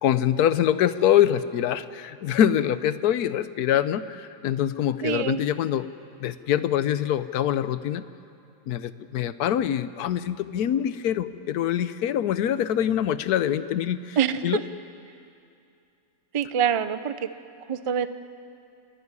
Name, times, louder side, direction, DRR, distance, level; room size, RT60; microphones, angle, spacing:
voice 1, 0.0-5.9 6.2-8.0 8.7-14.2 14.4-14.6, left 10 dB, 90° left, 14 dB, 1.2 m, -24 dB
voice 2, 5.0-5.4 14.2-14.6 16.3-17.3 17.7-18.1, right 8 dB, 50° right, 12 dB, 0.3 m, -25 dB
28.0 x 12.0 x 9.8 m, 2.6 s
omnidirectional pair, 1.6 m